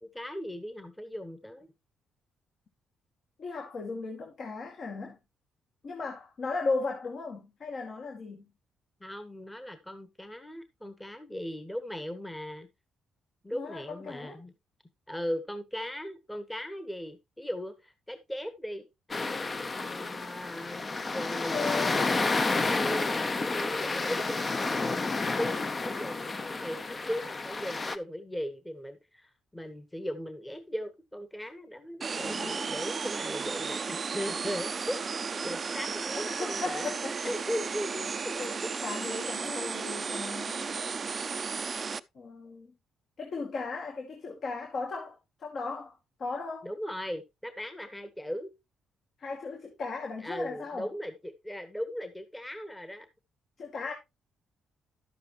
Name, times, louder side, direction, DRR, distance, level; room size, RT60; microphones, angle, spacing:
voice 1, 0.0-1.7 9.0-12.7 13.4-14.5 15.1-19.4 19.7-21.9 22.1-26.3 26.6-35.0 35.4-36.9 37.2-38.4 46.6-48.5 50.2-53.1, equal, 10° left, 1.3 m, -38 dB
voice 2, 3.4-5.2 5.8-8.4 13.5-14.4 21.1-22.1 32.2-32.7 36.1-37.3 38.3-41.3 42.1-42.7 43.2-46.7 49.2-50.9 53.6-53.9, left 4 dB, 55° left, 2.4 m, -37 dB
sound 1, 19.1-28.0, left 3 dB, 30° left, 0.9 m, -30 dB
sound 2, 32.0-42.0, right 5 dB, 40° right, 0.5 m, -34 dB
11.5 x 7.7 x 3.1 m
cardioid pair, 90°, 0 cm